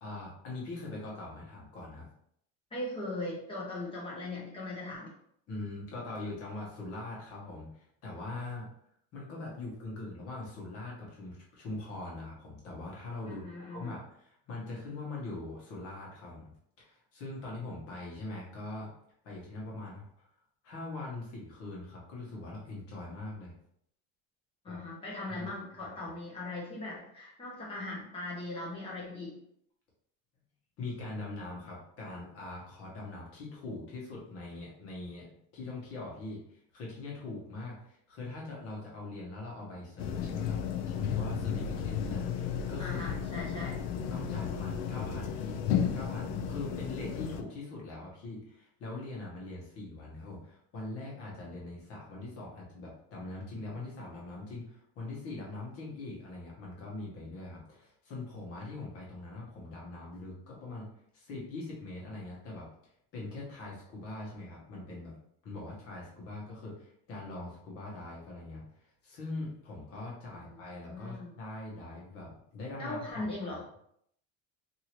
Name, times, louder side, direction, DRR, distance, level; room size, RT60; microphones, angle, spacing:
voice 1, 0.0-2.1 5.5-8.7 9.1-13.4 13.7-16.5 16.8-18.9 19.2-20.3 20.6-23.5 24.7-24.8 25.4-25.5 30.8-43.0 43.3-43.5 44.1-45.6 45.9-60.9 61.1-62.7 63.1-65.1 65.4-68.6 69.0-73.6, left 2 dB, 45° left, -3 dB, 1.2 m, -42 dB
voice 2, 2.7-5.1 13.3-13.9 24.6-29.4 42.8-43.8 70.3-71.3 72.8-73.6, left 2 dB, 15° left, -4 dB, 1.0 m, -39 dB
sound 1, 40.0-47.4, left 7 dB, 80° left, 0.5 m, -33 dB
2.7 x 2.7 x 3.0 m, 0.69 s
cardioid pair, 160°, 33 cm